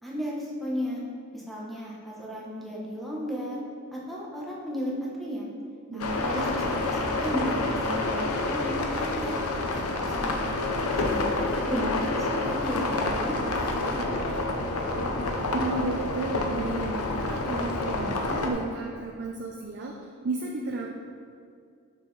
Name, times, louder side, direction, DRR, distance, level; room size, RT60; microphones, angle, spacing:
voice 1, 0.0-1.0 1.3-3.6 3.9-5.5 5.9-9.4 9.7-10.6 10.9-12.0 12.3-14.4, equal, ahead, -5 dB, 1.0 m, -34 dB
voice 2, 5.9-6.5 11.6-11.8 15.5-19.9 20.2-20.9, right 2 dB, 50° right, -1 dB, 0.5 m, -33 dB
sound 1, 6.0-18.5, left 2 dB, 80° left, 0.7 m, -28 dB
6.5 x 5.5 x 3.2 m, 2.3 s
head